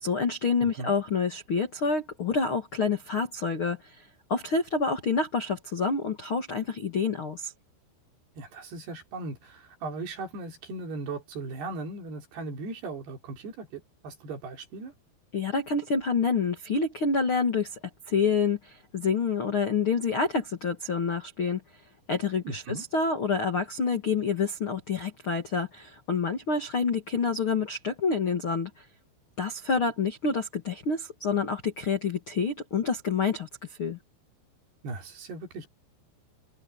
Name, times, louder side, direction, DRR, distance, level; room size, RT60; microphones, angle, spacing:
voice 1, 0.0-3.8 4.3-7.5 15.3-17.8 18.1-21.6 22.1-28.7 29.4-34.0, left 5 dB, 50° left, 1.6 m, -27 dB
voice 2, 0.6-0.9 8.4-14.9 22.4-22.9 34.8-35.7, right 3 dB, 55° right, 5.4 m, -38 dB
omnidirectional pair, 5.7 m